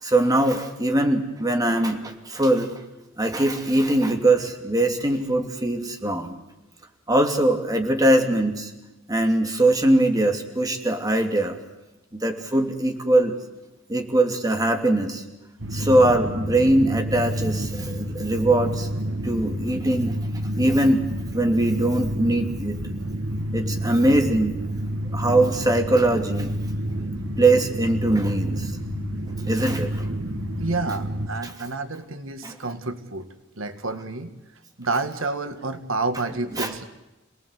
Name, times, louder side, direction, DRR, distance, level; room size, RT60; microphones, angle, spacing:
voice 1, 0.0-2.7 3.2-6.3 7.1-8.7 9.1-11.6 12.1-13.3 13.9-15.2 15.7-18.9 19.2-20.2 20.6-21.0 21.3-22.8 23.5-24.6 25.1-26.5 27.4-28.7 29.5-30.1 31.4-31.5 32.4-32.5 36.6-36.7, right 1 dB, 20° right, 4 dB, 2.8 m, -21 dB
sound 1, 15.6-31.3, right 1 dB, 70° right, 1.9 m, -29 dB
voice 2, 30.6-33.3 33.6-34.3 34.8-36.8, right 3 dB, 90° right, 9 dB, 1.8 m, -29 dB
28.0 x 19.0 x 8.2 m, 1.0 s
head